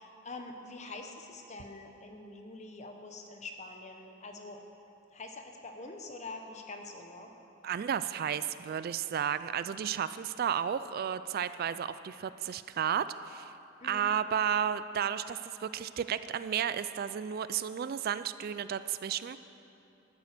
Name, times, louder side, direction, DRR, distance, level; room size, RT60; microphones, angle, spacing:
voice 1, 0.0-4.6 5.1-7.3 13.8-14.2, left 2 dB, 35° left, 4 dB, 1.1 m, -45 dB
voice 2, 7.6-13.5 13.8-19.4, right 8 dB, 50° right, 14 dB, 0.3 m, -33 dB
12.0 x 9.5 x 6.7 m, 2.9 s
head